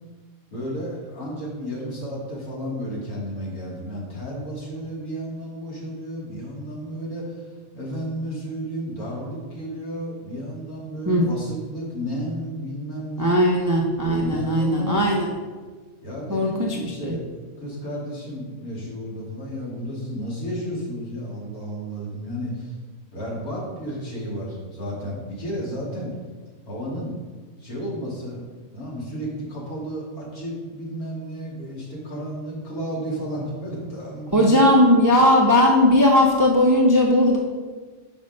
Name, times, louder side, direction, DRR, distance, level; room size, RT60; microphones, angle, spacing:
voice 1, 0.5-13.4 14.2-15.1 16.0-22.7 23.1-26.1 26.7-27.2 27.6-28.5 28.7-34.6, equal, 85° left, -5 dB, 2.4 m, -32 dB
voice 2, 13.2-15.3 16.3-16.8 17.1-17.2 34.3-37.4, left 1 dB, 30° right, -1 dB, 0.3 m, -18 dB
5.3 x 5.2 x 5.3 m, 1.4 s
omnidirectional pair, 1.5 m